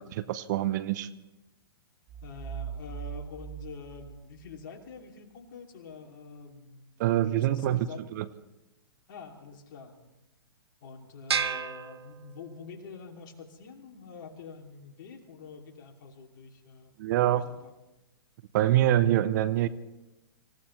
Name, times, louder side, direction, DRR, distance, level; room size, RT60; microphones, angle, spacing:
voice 1, 0.2-1.1 7.0-7.9 8.2-8.3 17.0-17.4 18.5-19.7, right 13 dB, 45° right, 14 dB, 0.8 m, -25 dB
sound 1, 2.1-4.9, right 8 dB, 25° right, 2.1 m, -41 dB
voice 2, 2.2-6.9 7.3-8.0 9.1-10.1 10.8-16.9 17.3-17.7, left 5 dB, 50° left, 2 dB, 2.6 m, -46 dB
sound 2, 11.3-12.8, right 6 dB, 80° right, 0.9 m, -32 dB
25.5 x 15.5 x 3.2 m, 0.99 s
figure-of-eight pair, 115°, 13 cm